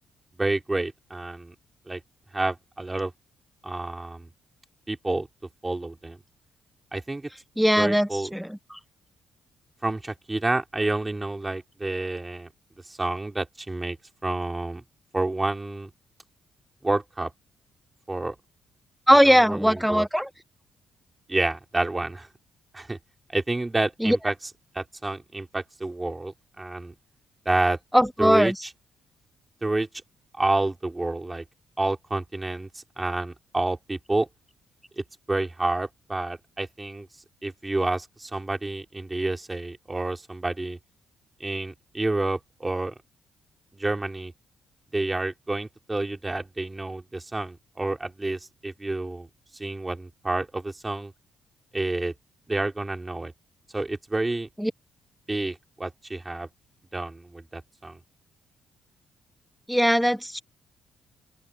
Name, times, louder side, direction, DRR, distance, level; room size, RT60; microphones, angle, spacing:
voice 1, 0.4-1.5 1.9-2.0 2.3-3.1 3.6-4.3 4.9-5.3 5.6-6.2 6.9-7.3 7.8-8.3 9.8-12.5 12.8-14.0 14.2-14.8 15.1-15.9 16.8-17.3 18.1-18.4 19.2-20.1 21.3-22.3 22.7-23.0 23.3-24.3 24.7-26.9 27.5-27.8 28.2-28.7 29.6-29.9 30.3-31.4 31.8-34.3 35.0-37.1 37.4-40.8 41.4-42.9 43.7-44.3 44.9-49.3 49.5-51.1 51.7-52.1 52.5-53.3 53.7-54.5 55.3-56.5 56.9-58.0, right 2 dB, 15° right, 3.9 m, -29 dB
voice 2, 7.6-8.8 19.1-20.3 24.0-24.2 27.9-28.5 54.6-54.7 59.7-60.4, equal, ahead, 0.8 m, -20 dB
open air
cardioid pair, 90°, 0 cm